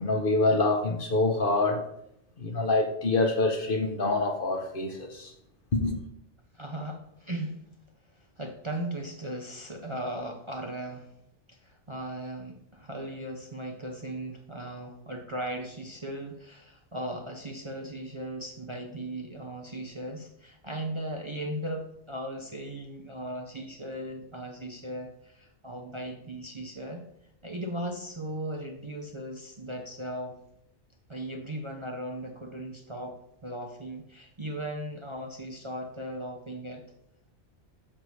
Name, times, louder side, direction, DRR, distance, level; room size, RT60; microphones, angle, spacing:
voice 1, 0.0-1.8 2.4-5.3 5.7-6.0, left 2 dB, 50° left, 1.1 m, -26 dB
voice 2, 6.5-7.6 8.4-11.1 11.5-27.0 27.4-30.4 31.1-33.2 33.4-36.8, right 1 dB, 30° right, 0.7 m, -37 dB
8.8 x 6.6 x 3.3 m
omnidirectional pair, 1.2 m